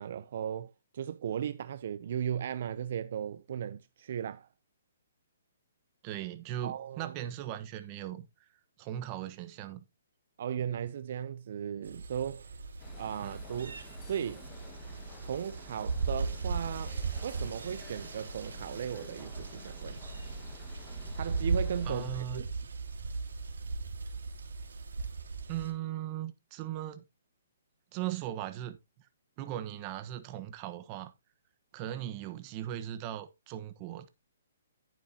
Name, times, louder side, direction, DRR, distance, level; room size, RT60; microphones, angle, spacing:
voice 1, 0.0-4.5 6.6-7.2 10.4-12.5 13.0-13.8 14.0-14.4 15.2-17.0 17.2-20.0 21.1-22.5, right 9 dB, 55° right, 0.6 m, -36 dB
voice 2, 6.0-8.3 8.8-9.8 13.2-13.4 21.9-22.4 25.5-27.1 27.9-28.8 29.4-31.1 31.7-34.1, right 12 dB, 25° right, 1.2 m, -38 dB
sound 1, 11.8-25.7, right 4 dB, 90° right, 3.3 m, -37 dB
sound 2, 12.8-22.1, left 3 dB, 20° left, 1.7 m, -52 dB
10.5 x 9.2 x 2.9 m
hypercardioid pair, 155°, 0 cm